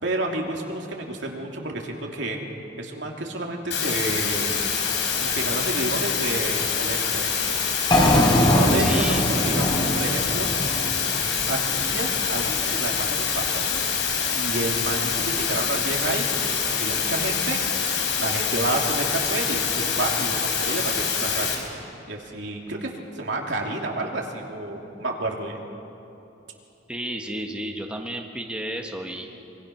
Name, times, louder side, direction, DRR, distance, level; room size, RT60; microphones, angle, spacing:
voice 1, 0.0-2.4 2.8-4.6 5.2-7.3 8.5-9.6 9.9-10.5 11.5-13.9 14.3-16.2 16.5-17.6 18.2-25.6, right 2 dB, 80° right, 0 dB, 2.9 m, -30 dB
sound 1, 3.7-21.6, left 6 dB, 75° left, 4.0 m, -25 dB
sound 2, 7.9-12.0, equal, 25° left, 3.4 m, -22 dB
voice 2, 8.8-9.4 26.9-29.4, right 1 dB, 5° right, 2 dB, 1.4 m, -32 dB
25.0 x 24.5 x 5.9 m, 2.9 s
head